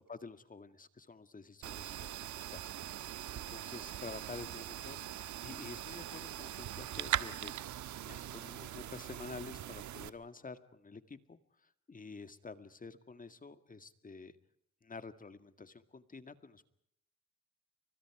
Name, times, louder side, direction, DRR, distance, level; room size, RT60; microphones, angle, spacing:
voice 1, 0.0-2.7 3.3-7.5 8.0-11.4 11.9-14.3 14.8-16.6, left 4 dB, 25° left, 11 dB, 2.0 m, -49 dB
sound 1, 1.6-10.1, right 12 dB, 70° right, 1.4 m, -41 dB
30.0 x 25.5 x 4.9 m, 0.72 s
cardioid pair, 90°, 30 cm